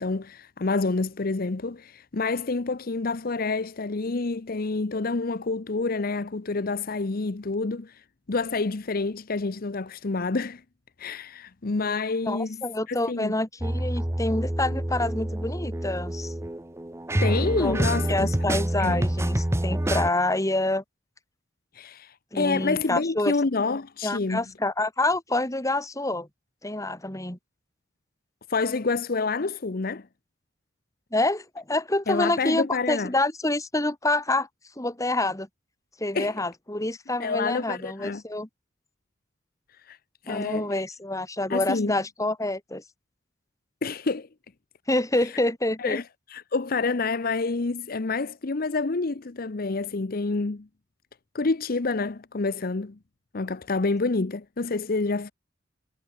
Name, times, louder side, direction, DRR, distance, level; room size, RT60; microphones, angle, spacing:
voice 1, 0.0-10.6 11.0-12.6 12.9-13.3 17.2-18.3 18.8-19.0 21.7-24.4 28.5-30.1 32.1-33.1 36.1-36.3 37.2-38.2 39.8-40.0 40.3-40.8 41.5-42.0 43.8-44.3 45.8-46.0 46.3-50.7 51.3-53.0 53.3-55.3, left 3 dB, 50° left, 0.8 m, -28 dB
voice 2, 12.2-16.3 17.6-20.8 22.3-23.3 24.0-26.3 26.6-27.4 31.1-34.5 34.8-35.5 36.0-38.5 40.3-42.8 44.9-46.0, left 2 dB, 20° left, 2.8 m, -27 dB
sound 1, 13.6-20.1, right 1 dB, 15° right, 0.9 m, -27 dB
head